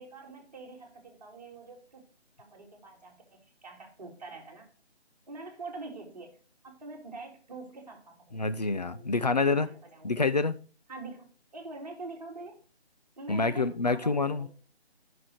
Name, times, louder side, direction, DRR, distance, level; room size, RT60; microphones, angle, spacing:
voice 1, 0.0-2.1 2.4-4.7 5.3-6.4 6.6-8.4 8.9-9.1 9.4-10.1 10.9-11.3 11.5-12.6 13.2-14.5, right 3 dB, 35° right, 0 dB, 2.4 m, -45 dB
voice 2, 8.3-9.7 10.0-10.6 13.3-14.5, left 3 dB, 40° left, 12 dB, 0.6 m, -27 dB
7.3 x 6.1 x 6.2 m, 0.38 s
figure-of-eight pair, 155°, 33 cm